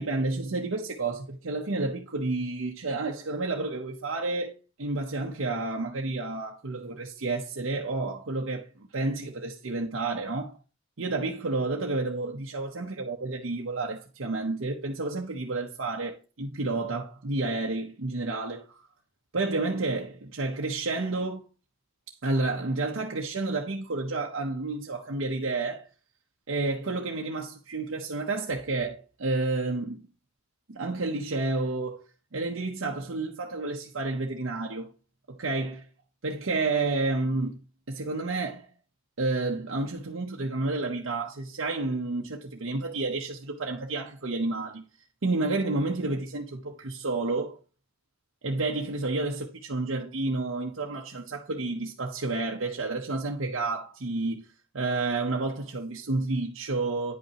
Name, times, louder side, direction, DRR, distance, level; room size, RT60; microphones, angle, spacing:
voice 1, 0.0-4.5 4.8-10.5 11.0-18.9 19.3-21.4 22.2-25.9 26.5-30.0 30.7-32.0 32.3-34.9 35.3-35.8 36.2-37.6 37.9-38.7 39.2-44.8 45.2-47.6 48.4-54.5 54.7-57.2, right 3 dB, 75° right, 0.9 m, -30 dB
9.8 x 5.5 x 2.9 m
head